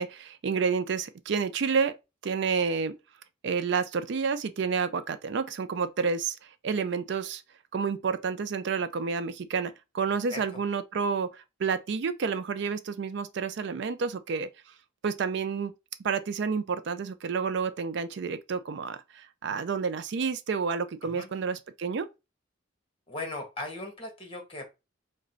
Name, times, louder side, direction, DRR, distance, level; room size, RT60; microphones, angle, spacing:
voice 1, 0.0-2.0 2.2-3.0 3.4-7.4 7.7-14.5 15.0-15.7 16.0-22.1, right 5 dB, 60° right, 0.4 m, -30 dB
voice 2, 23.1-24.6, left 2 dB, 30° left, 1.4 m, -37 dB
4.8 x 2.2 x 4.4 m
head